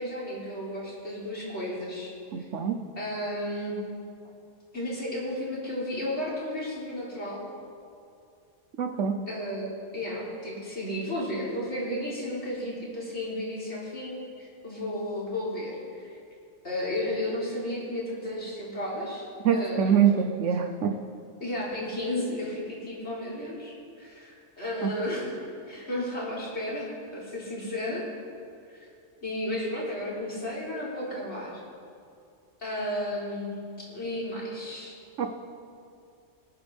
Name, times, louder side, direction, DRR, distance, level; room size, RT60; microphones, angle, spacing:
voice 1, 0.0-2.5 3.0-3.8 4.7-7.4 9.3-16.1 16.6-19.3 19.5-20.0 21.4-25.3 25.7-28.0 28.7-28.9 29.2-31.5 32.6-33.5 33.8-34.9, left 1 dB, 60° left, -6 dB, 3.9 m, -33 dB
voice 2, 2.3-2.8 8.8-9.2 19.4-21.0 24.8-24.9 35.2-35.3, right 7 dB, 75° right, 6 dB, 1.2 m, -24 dB
25.5 x 9.9 x 3.6 m, 2.4 s
omnidirectional pair, 1.3 m